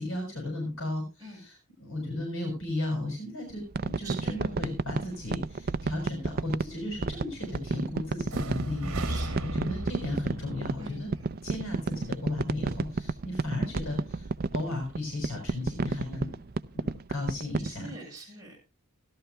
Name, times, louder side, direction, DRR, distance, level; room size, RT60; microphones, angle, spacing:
voice 1, 0.0-1.5 1.8-9.1 9.4-11.1 11.4-14.3 14.5-16.4 16.7-17.9, left 2 dB, 60° left, 2 dB, 6.0 m, -35 dB
sound 1, 3.5-17.7, right 3 dB, 45° right, 0.5 m, -31 dB
voice 2, 4.0-4.5 9.1-9.6 10.8-11.4 17.6-18.6, right 3 dB, 15° right, -3 dB, 6.1 m, -45 dB
sound 2, 8.3-12.2, right 1 dB, 65° right, 1.8 m, -37 dB
16.5 x 12.5 x 2.2 m, 0.28 s
head